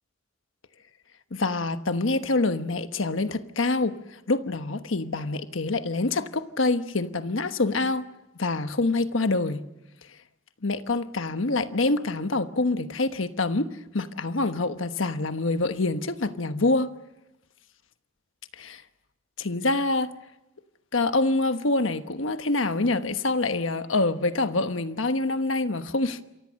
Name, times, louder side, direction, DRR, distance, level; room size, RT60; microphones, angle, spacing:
voice 1, 1.3-4.0 4.3-8.1 8.4-9.6 10.6-16.9 18.5-18.8 19.4-20.1 20.9-26.2, left 2 dB, 85° left, 1.2 m, -26 dB
28.0 x 24.5 x 6.5 m
head